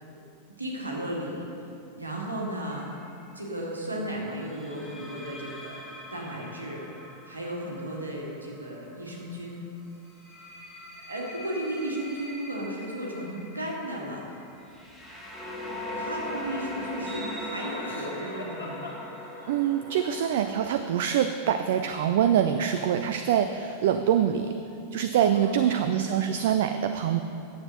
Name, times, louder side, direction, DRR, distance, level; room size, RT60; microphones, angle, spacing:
voice 1, 0.6-1.5 1.9-3.0 3.3-5.8 6.1-7.0 7.3-9.7 11.1-14.4 15.2-15.3 16.0-18.9 25.3-25.8, right 1 dB, 80° right, -2 dB, 1.8 m, -35 dB
sound 1, 2.7-3.0 4.5-9.3 10.1-20.5, left 1 dB, ahead, 1.8 m, -40 dB
Laughter, 17.0-19.7 22.5-23.3 23.5-24.1, left 2 dB, 75° left, 1.8 m, -42 dB
voice 2, 19.5-24.6 24.9-27.2, right 9 dB, 55° right, 9 dB, 0.4 m, -24 dB
9.7 x 7.3 x 6.0 m, 2.7 s
figure-of-eight pair, 90°, 0 cm